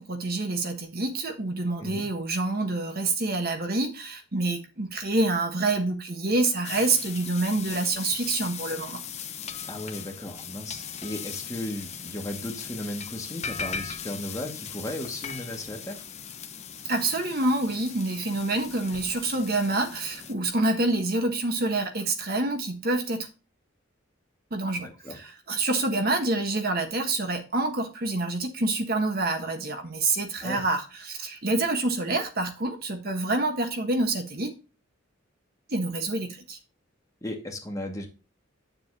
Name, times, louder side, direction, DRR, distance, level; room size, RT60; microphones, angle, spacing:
voice 1, 0.0-9.0 16.9-23.3 24.5-34.5 35.7-36.6, right 2 dB, 50° right, 1.4 m, -27 dB
sound 1, 6.6-20.3, left 7 dB, 35° left, 1.0 m, -39 dB
voice 2, 9.7-16.0 24.8-25.2 30.4-30.6 37.2-38.1, left 1 dB, 15° left, 2.0 m, -36 dB
9.1 x 7.0 x 2.9 m
head